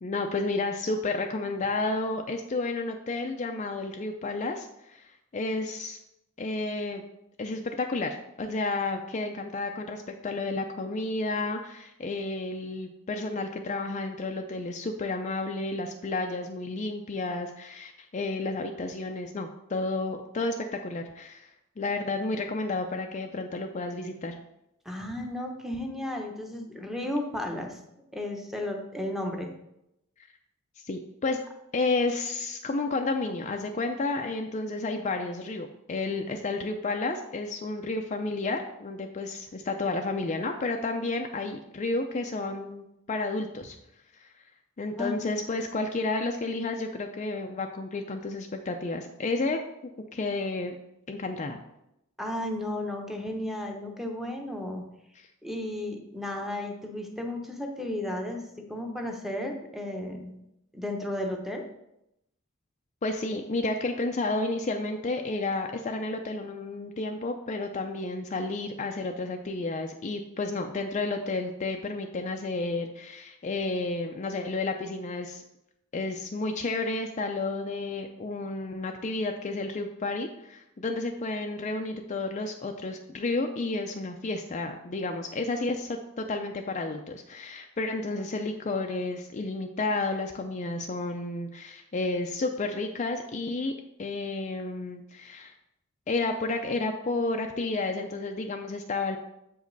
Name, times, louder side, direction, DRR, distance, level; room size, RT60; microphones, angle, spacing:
voice 1, 0.0-6.0 6.4-7.0 7.4-21.5 21.8-24.4 30.8-31.4 31.7-43.8 44.2-44.3 44.8-49.6 50.1-50.8 51.1-51.6 63.0-75.4 75.9-93.7 94.0-95.5 96.1-99.2, left 3 dB, 35° left, 4 dB, 0.4 m, -31 dB
voice 2, 24.8-27.8 28.1-29.5 45.0-45.4 52.2-54.8 55.4-60.4 60.7-61.7, left 1 dB, ahead, 1 dB, 0.8 m, -34 dB
7.4 x 5.1 x 4.0 m, 0.83 s
head